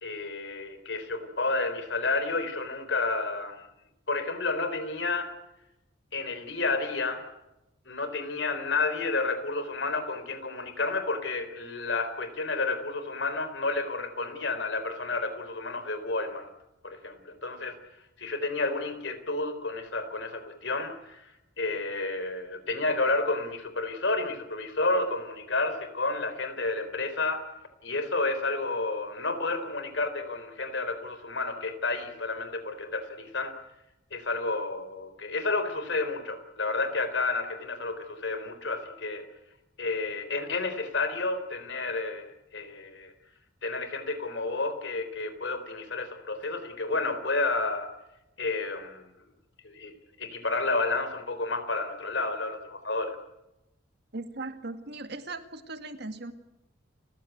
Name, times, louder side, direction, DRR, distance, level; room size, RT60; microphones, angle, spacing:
voice 1, 0.0-3.6 4.1-5.3 6.1-7.2 7.9-16.5 16.8-17.8 18.2-21.3 21.6-27.4 27.8-33.5 34.1-39.2 39.8-43.1 43.6-47.9 48.4-49.1 49.6-49.9 50.2-53.2, left 3 dB, 65° left, 10 dB, 3.8 m, -31 dB
voice 2, 54.1-56.3, right 2 dB, 55° right, 8 dB, 2.0 m, -38 dB
30.0 x 15.0 x 9.3 m, 0.93 s
head